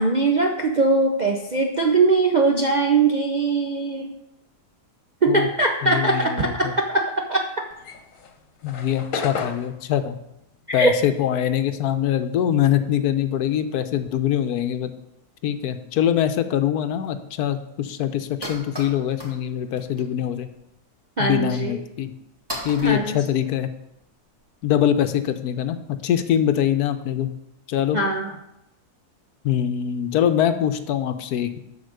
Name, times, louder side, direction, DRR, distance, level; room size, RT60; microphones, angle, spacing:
voice 1, 0.0-4.1 5.2-7.4 10.7-10.9 21.2-21.8 22.8-23.2 27.9-28.4, right 3 dB, 50° right, 2 dB, 0.5 m, -21 dB
voice 2, 5.8-6.7 8.6-10.1 10.7-14.9 15.4-20.5 21.2-22.1 22.6-23.7 24.6-27.3 27.7-28.0 29.4-31.6, left 10 dB, 75° left, 10 dB, 1.1 m, -23 dB
sound 1, 7.7-12.4 12.7-14.7, left 5 dB, 55° left, 1.3 m, -35 dB
sound 2, 17.0-17.1 17.4-17.5 17.8-17.9 18.2-19.4 19.7-20.1 20.5-20.6 21.4-21.5 22.0-22.1 22.5-24.0, equal, 15° right, 1.8 m, -36 dB
7.9 x 5.8 x 6.4 m, 0.84 s
omnidirectional pair, 1.7 m